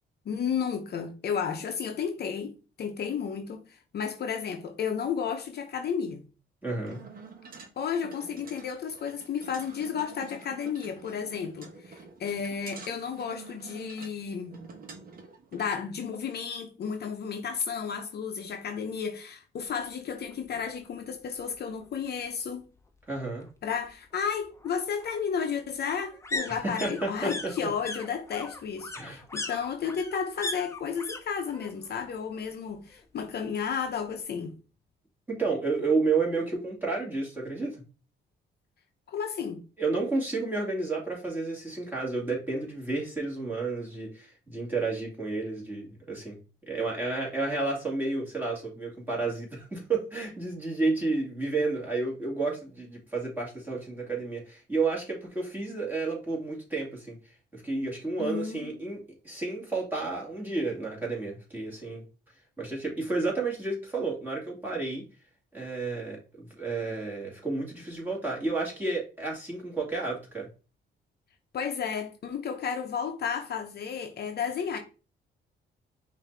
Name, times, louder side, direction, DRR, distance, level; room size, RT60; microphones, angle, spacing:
voice 1, 0.3-3.6 3.9-6.2 7.8-14.6 15.5-22.7 23.6-34.6 39.1-39.6 58.2-58.7 71.5-74.8, left 7 dB, 55° left, 0.8 m, -32 dB
voice 2, 6.6-7.0 23.1-23.5 26.5-27.5 28.9-29.2 35.3-37.8 39.8-46.4 46.7-57.2 57.5-59.0 59.2-62.0 62.6-65.0 65.5-70.5, right 3 dB, 10° right, 2.4 m, -31 dB
sound 1, 6.9-15.7, right 4 dB, 45° right, 1.2 m, -48 dB
sound 2, 20.3-20.4 20.8-20.9 21.1-22.1 23.4-31.2 31.5-32.0 32.3-33.3 33.6-33.7, left 3 dB, 15° left, 0.8 m, -39 dB
5.5 x 2.8 x 3.3 m
cardioid pair, 90°, 20 cm